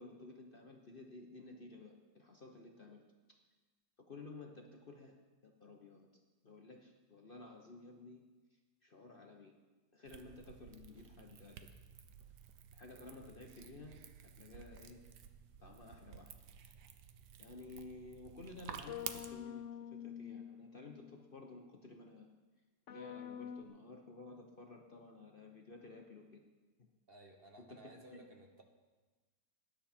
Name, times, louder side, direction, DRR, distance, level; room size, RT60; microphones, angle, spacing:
voice 1, 0.0-3.0 3.3-3.4 4.0-5.2 5.4-6.1 6.4-8.2 8.5-9.5 9.9-11.6 12.7-14.0 14.4-15.0 15.6-16.3 17.4-19.6 19.9-22.3 22.9-26.4 26.8-26.9 27.7-28.2, left 3 dB, 40° left, 2 dB, 1.0 m, -53 dB
sound 1, 10.1-19.3, right 8 dB, 75° right, 1.4 m, -52 dB
sound 2, 18.9-21.3 22.9-23.6, left 9 dB, 65° left, 0.8 m, -47 dB
voice 2, 27.1-28.6, right 2 dB, 40° right, 2 dB, 1.3 m, -57 dB
18.5 x 10.5 x 4.4 m, 1.3 s
omnidirectional pair, 1.8 m